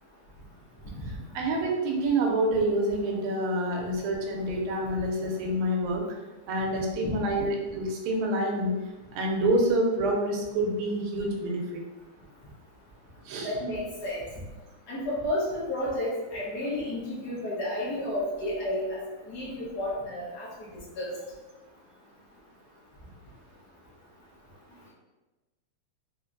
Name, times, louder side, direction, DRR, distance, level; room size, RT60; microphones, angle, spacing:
voice 1, 1.3-6.0 6.5-8.7 9.2-11.8 13.3-13.5, right 1 dB, 75° right, 0 dB, 1.8 m, -27 dB
voice 2, 13.4-14.2 14.9-19.0 19.3-20.5 21.0-21.1, left 1 dB, 75° left, -8 dB, 0.9 m, -31 dB
4.6 x 2.8 x 2.5 m, 1.1 s
omnidirectional pair, 3.4 m